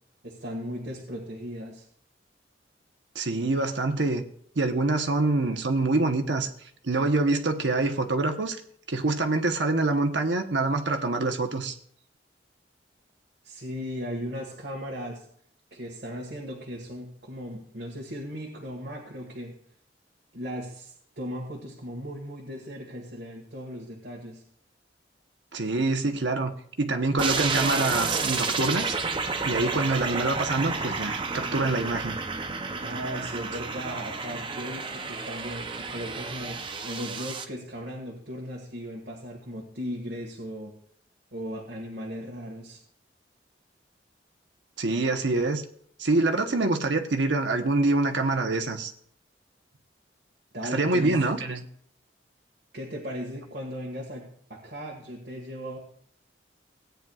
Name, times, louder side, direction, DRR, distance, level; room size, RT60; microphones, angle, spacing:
voice 1, 0.2-1.9 13.4-15.2 15.7-19.5 20.3-24.4 32.8-40.7 41.3-42.8 50.5-51.2 52.7-55.8, equal, 60° right, -2 dB, 1.8 m, -37 dB
voice 2, 3.1-4.2 4.6-6.5 6.8-8.6 8.9-11.7 25.5-26.5 26.8-28.9 29.4-32.2 44.8-45.6 46.0-48.9 50.7-51.7, right 2 dB, 80° right, 6 dB, 1.0 m, -25 dB
sound 1, 27.2-37.4, right 4 dB, 25° right, 0.6 m, -31 dB
17.0 x 9.2 x 2.4 m, 0.63 s
head